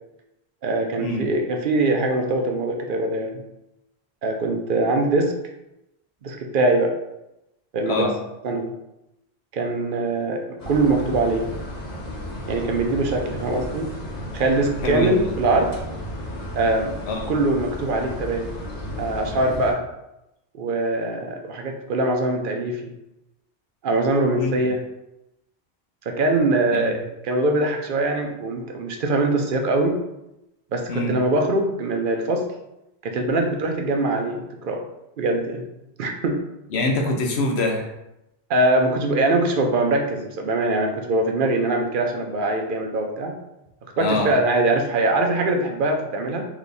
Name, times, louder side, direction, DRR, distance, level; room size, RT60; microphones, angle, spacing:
voice 1, 0.6-3.4 4.2-5.4 6.2-6.9 7.7-8.1 8.4-8.7 9.5-11.5 12.5-13.9 14.3-15.7 16.5-16.9 17.3-18.5 19.0-19.8 20.5-22.9 23.8-24.8 26.1-30.0 30.7-32.5 33.0-34.8 35.2-35.6 36.0-36.4 38.5-43.3 44.0-46.5, right 2 dB, 60° right, 3 dB, 0.6 m, -22 dB
sound 1, 10.6-19.7, left 1 dB, 45° left, 1.0 m, -33 dB
voice 2, 14.8-15.2 17.1-17.4 24.4-24.6 26.7-26.9 30.9-31.2 36.7-37.9 44.0-44.3, left 2 dB, 85° left, 1 dB, 1.0 m, -24 dB
3.3 x 3.0 x 4.1 m, 0.90 s
omnidirectional pair, 1.1 m